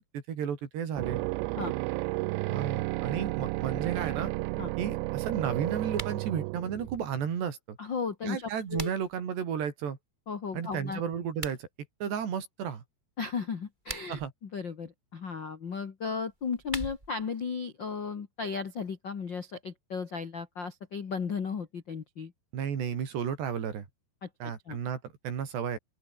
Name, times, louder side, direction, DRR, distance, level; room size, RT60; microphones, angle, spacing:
voice 1, 0.1-1.2 2.5-4.3 4.8-7.8 8.2-10.0 10.5-11.7 12.0-12.8 14.1-14.3 22.5-23.9 24.4-25.8, right 8 dB, 75° right, 5.6 m, -33 dB
sound 1, 1.0-7.2, right 23 dB, 90° right, 2.8 m, -32 dB
sound 2, 5.9-6.2 8.3-9.2 11.3-11.6 13.7-14.3 16.3-17.3, right 1 dB, 10° right, 7.2 m, -41 dB
voice 2, 7.8-8.9 10.3-11.0 13.2-22.3 24.2-24.8, left 5 dB, 55° left, 1.3 m, -35 dB
open air
omnidirectional pair, 5.0 m